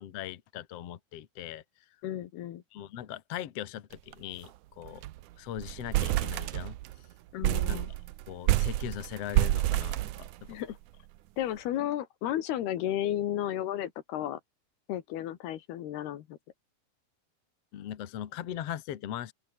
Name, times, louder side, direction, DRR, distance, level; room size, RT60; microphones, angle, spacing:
voice 1, 0.0-1.6 2.7-5.0 5.4-6.8 7.7-7.8 8.3-10.5 17.7-19.3, left 11 dB, 60° left, 1.8 m, -40 dB
voice 2, 2.0-2.6 7.3-7.9 10.5-10.8 11.4-14.4 14.9-16.4, left 12 dB, 75° left, 3.5 m, -33 dB
sound 1, 3.9-4.1 4.4-4.5 4.8-5.2 5.6-7.0 7.4-10.7, right 16 dB, 90° right, 1.7 m, -28 dB
open air
omnidirectional pair, 4.7 m